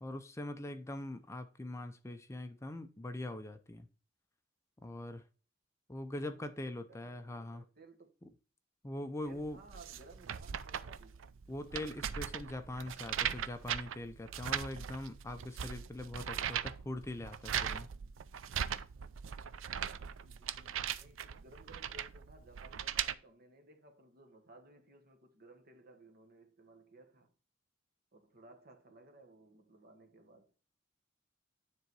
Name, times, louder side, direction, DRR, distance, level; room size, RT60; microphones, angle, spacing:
voice 1, 0.0-3.9 4.8-5.2 5.9-7.6 8.8-9.6 11.5-17.9, left 1 dB, 15° left, 0.5 m, -42 dB
voice 2, 6.9-8.1 9.2-11.2 20.0-27.3 28.1-30.5, right 2 dB, 50° right, 1.4 m, -59 dB
sound 1, 9.4-23.1, right 8 dB, 80° right, 0.5 m, -39 dB
9.7 x 3.8 x 4.6 m
head